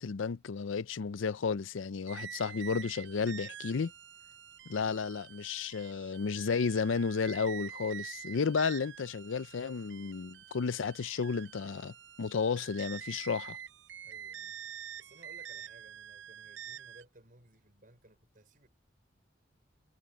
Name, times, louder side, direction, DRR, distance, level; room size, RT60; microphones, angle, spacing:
voice 1, 0.0-3.9 4.7-13.6, left 5 dB, 90° left, 0.5 m, -33 dB
sound 1, 2.1-17.0, right 9 dB, 65° right, 0.6 m, -47 dB
voice 2, 14.0-14.6 15.0-18.7, right 1 dB, 45° right, 5.7 m, -60 dB
head